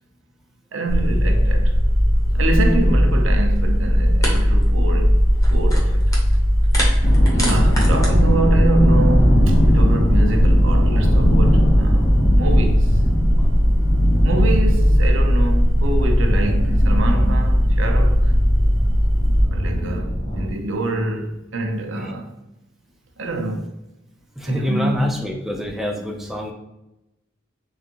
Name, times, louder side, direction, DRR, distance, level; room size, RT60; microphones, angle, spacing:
voice 1, 0.7-1.8 2.3-5.2 5.5-6.1 7.3-12.9 14.2-18.3 19.5-22.3 23.2-23.7 24.5-24.9, right 2 dB, 80° right, 0.6 m, -26 dB
sound 1, 0.9-19.5, equal, 80° left, 0.8 m, -17 dB
sound 2, 3.6-3.7 4.2-4.4 4.6-4.9 5.3-6.4 6.6-8.1, equal, 15° left, 0.9 m, -27 dB
sound 3, 7.0-20.5, equal, 50° left, 0.8 m, -22 dB
voice 2, 24.4-26.5, equal, ahead, 0.4 m, -26 dB
3.9 x 3.4 x 2.9 m
head